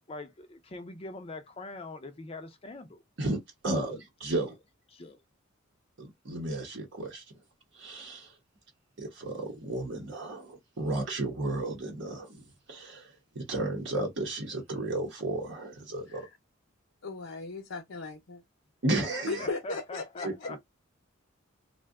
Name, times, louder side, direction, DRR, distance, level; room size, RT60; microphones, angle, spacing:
voice 1, 0.1-3.0 3.9-4.0 4.4-4.5 4.9-5.2 19.0-20.6, left 2 dB, 30° left, 0.4 m, -43 dB
voice 2, 3.6-4.5 6.0-7.2 7.7-8.3 9.0-16.3 18.8-19.5 20.2-20.3, right 2 dB, 60° right, 0.8 m, -33 dB
voice 3, 17.0-18.4 19.3-20.5, left 3 dB, 70° left, 0.6 m, -37 dB
2.5 x 2.2 x 3.5 m
head